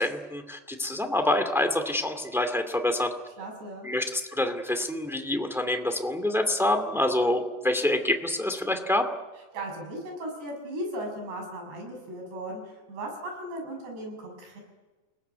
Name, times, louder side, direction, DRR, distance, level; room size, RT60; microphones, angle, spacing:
voice 1, 0.0-3.1 3.8-9.0, left 1 dB, ahead, 6 dB, 0.9 m, -26 dB
voice 2, 3.4-3.9 9.5-14.6, right 1 dB, 85° right, 3 dB, 8.8 m, -37 dB
29.5 x 20.0 x 9.5 m, 1.2 s
omnidirectional pair, 4.8 m